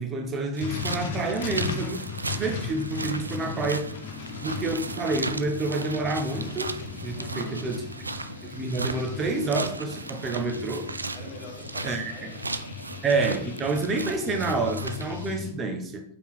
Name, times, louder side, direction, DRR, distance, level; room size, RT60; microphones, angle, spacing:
voice 1, 0.0-2.0 2.3-3.9 4.4-6.8 7.0-7.8 8.4-10.9 11.8-12.1 13.0-16.0, right 3 dB, 25° right, 5 dB, 1.1 m, -28 dB
sound 1, 0.5-15.4, right 3 dB, 80° right, 0.3 m, -36 dB
sound 2, 0.6-15.5, left 6 dB, 50° left, 1.3 m, -38 dB
voice 2, 7.2-7.7 11.1-12.5 12.9-13.0, left 2 dB, 30° left, -1 dB, 2.1 m, -45 dB
5.2 x 4.7 x 4.6 m, 0.65 s
figure-of-eight pair, 90°, 0 cm